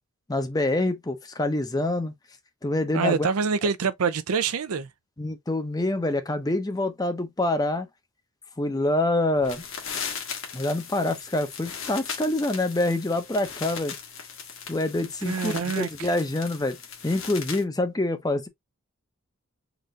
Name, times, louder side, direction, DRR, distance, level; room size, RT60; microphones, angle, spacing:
voice 1, 0.3-2.1 2.6-3.3 5.2-7.9 8.6-9.6 10.5-13.9 14.7-16.8 17.0-18.5, left 2 dB, 15° left, 0.6 m, -26 dB
voice 2, 2.9-4.9 15.3-16.1, right 5 dB, 85° right, 0.5 m, -26 dB
sound 1, 9.4-17.6, left 6 dB, 65° left, 1.2 m, -38 dB
4.0 x 2.5 x 3.2 m
head